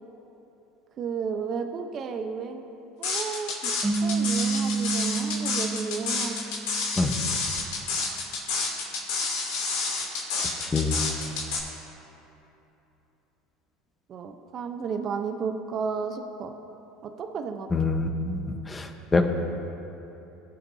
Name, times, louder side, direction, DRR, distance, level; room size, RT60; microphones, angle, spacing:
voice 1, 1.0-2.6 3.0-3.7 4.0-6.4 14.1-16.5 17.0-17.7, right 5 dB, 45° right, 5 dB, 0.7 m, -33 dB
sound 1, 3.0-11.6, left 4 dB, 75° left, 2.7 m, -29 dB
sound 2, 3.8-7.2, right 4 dB, 10° right, 1.1 m, -29 dB
voice 2, 10.6-11.0 17.7-18.4 18.7-19.3, left 3 dB, 20° left, 6 dB, 0.9 m, -25 dB
21.0 x 7.7 x 2.7 m, 2.9 s
supercardioid pair, 100°, 0 cm